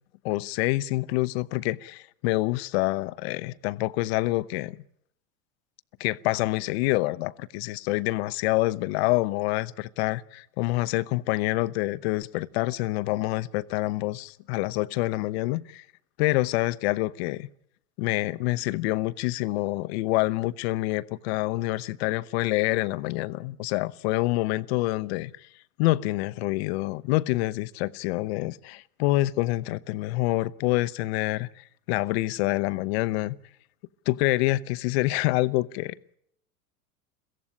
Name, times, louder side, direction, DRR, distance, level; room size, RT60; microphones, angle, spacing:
voice 1, 0.2-4.8 6.0-15.8 16.2-17.5 18.0-25.3 25.8-33.4 34.1-35.9, left 19 dB, 45° left, 0.8 m, -27 dB
23.0 x 15.5 x 9.8 m
figure-of-eight pair, 85°, 44 cm